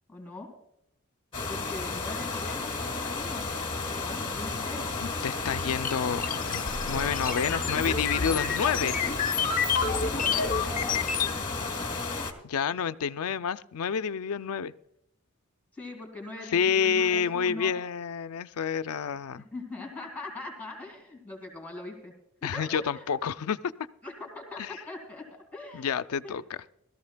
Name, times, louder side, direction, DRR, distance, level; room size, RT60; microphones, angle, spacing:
voice 1, 0.1-0.5 1.5-3.4 3.9-4.9 10.0-11.0 15.7-17.7 19.5-22.1 22.4-23.1 24.0-25.9 26.2-26.4, left 2 dB, 5° left, 2.6 m, -41 dB
sound 1, 1.3-12.3, left 3 dB, 25° left, 1.4 m, -33 dB
voice 2, 5.0-9.0 12.4-14.7 16.5-19.4 22.4-23.6 24.6-24.8 25.7-26.6, left 7 dB, 80° left, 0.4 m, -29 dB
sound 2, 5.8-11.3, left 6 dB, 40° left, 0.7 m, -29 dB
20.5 x 14.0 x 2.2 m
head